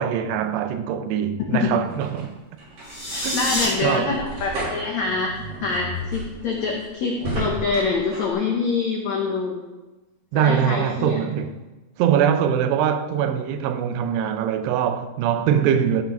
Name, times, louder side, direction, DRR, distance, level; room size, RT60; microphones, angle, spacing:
voice 1, 0.0-2.3 3.2-4.2 10.3-11.5 12.0-16.0, right 9 dB, 85° right, 2.8 m, -23 dB
sound 1, 1.6-8.3, right 1 dB, 55° right, 4.6 m, -34 dB
sound 2, 2.8-3.7, left 1 dB, 10° left, 0.8 m, -26 dB
voice 2, 3.3-5.3 5.6-9.6 10.3-11.2, left 4 dB, 80° left, 1.6 m, -25 dB
14.0 x 5.8 x 5.3 m
omnidirectional pair, 4.8 m